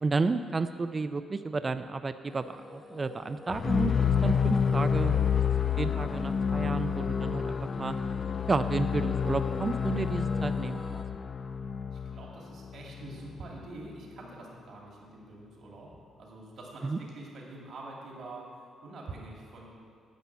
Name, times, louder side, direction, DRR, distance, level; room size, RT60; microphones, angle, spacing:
voice 1, 0.0-3.9 4.2-5.3 5.8-8.0 8.5-10.8 16.8-17.0, right 3 dB, 30° right, 10 dB, 0.4 m, -31 dB
sound 1, 2.3-11.0, left 2 dB, 15° left, 0.8 m, -48 dB
sound 2, 3.5-13.5, left 6 dB, 45° left, 0.5 m, -29 dB
voice 2, 11.9-19.7, right 2 dB, 65° right, -2 dB, 2.4 m, -45 dB
10.5 x 5.5 x 8.5 m, 2.3 s
cardioid pair, 90°, 0 cm